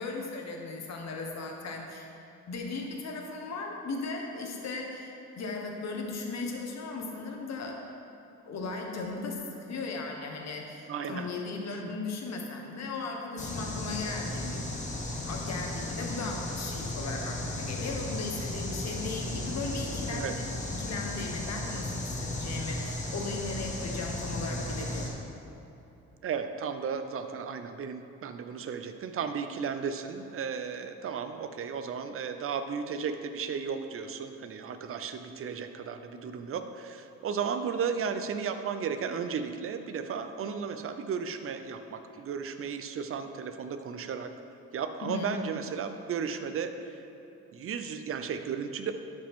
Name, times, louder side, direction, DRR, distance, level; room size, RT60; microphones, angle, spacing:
voice 1, 0.0-2.1 2.5-7.8 8.4-14.7 15.3-25.1 45.0-45.4, left 3 dB, 60° left, 1 dB, 1.3 m, -37 dB
voice 2, 10.9-11.3 20.0-20.3 26.2-44.3 44.7-47.0 47.5-48.9, right 6 dB, 45° right, 8 dB, 0.6 m, -34 dB
sound 1, 13.4-25.1, left 1 dB, 25° left, 1.3 m, -35 dB
11.5 x 5.2 x 3.6 m, 3.0 s
cardioid pair, 90°, 30 cm